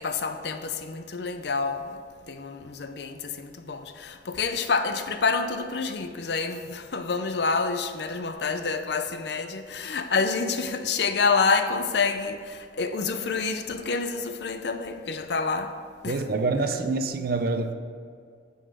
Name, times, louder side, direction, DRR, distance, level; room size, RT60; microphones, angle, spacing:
voice 1, 0.0-15.8 16.0-16.2, left 4 dB, 65° left, 0.6 m, -28 dB
voice 2, 16.0-17.7, right 3 dB, 55° right, 0.6 m, -26 dB
9.9 x 3.9 x 6.7 m
head